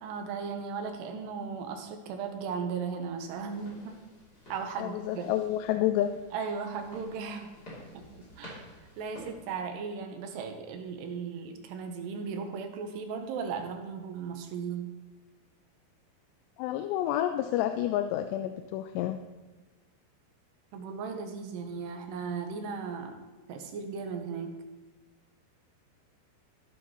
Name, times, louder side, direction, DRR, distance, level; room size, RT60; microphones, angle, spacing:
voice 1, 0.0-4.0 4.5-5.2 6.3-7.5 7.9-8.6 9.0-14.9 20.7-23.2 23.5-24.5, right 5 dB, 85° right, 5 dB, 3.0 m, -36 dB
sound 1, 3.3-9.5, equal, 25° left, 3.0 m, -51 dB
voice 2, 4.8-6.1 16.6-19.2, left 12 dB, 85° left, 7 dB, 2.7 m, -29 dB
15.0 x 8.3 x 3.1 m, 1.2 s
omnidirectional pair, 4.8 m